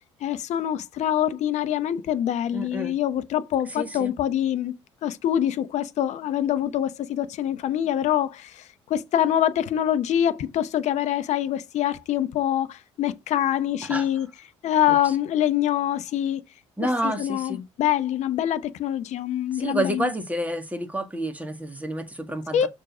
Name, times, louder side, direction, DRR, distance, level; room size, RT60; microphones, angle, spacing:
voice 1, 0.2-4.7 5.0-14.3 14.6-16.4 17.0-20.1 22.5-22.7, left 11 dB, 50° left, 0.9 m, -25 dB
voice 2, 2.5-3.0 3.7-4.1 13.8-14.1 16.8-17.6 19.5-22.7, right 1 dB, 10° right, 2.0 m, -29 dB
6.5 x 3.8 x 6.1 m
figure-of-eight pair, 55°, 15 cm